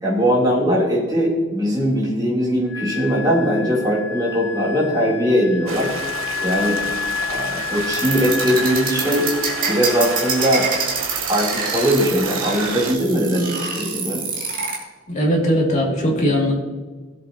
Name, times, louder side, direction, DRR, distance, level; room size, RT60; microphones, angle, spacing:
voice 1, 0.0-5.9 6.4-6.8 7.3-9.3 9.7-10.7 11.2-14.2, equal, 20° right, -5 dB, 3.3 m, -20 dB
Wind instrument woodwind instrument, 2.7-11.0, left 7 dB, 55° left, 0.7 m, -30 dB
Stream, 5.7-12.9, right 5 dB, 90° right, 1.0 m, -30 dB
sound 1, 7.9-14.8, right 5 dB, 40° right, 2.3 m, -25 dB
voice 2, 15.1-16.5, equal, 35° left, -2 dB, 2.4 m, -19 dB
17.0 x 7.7 x 2.9 m, 1.3 s
head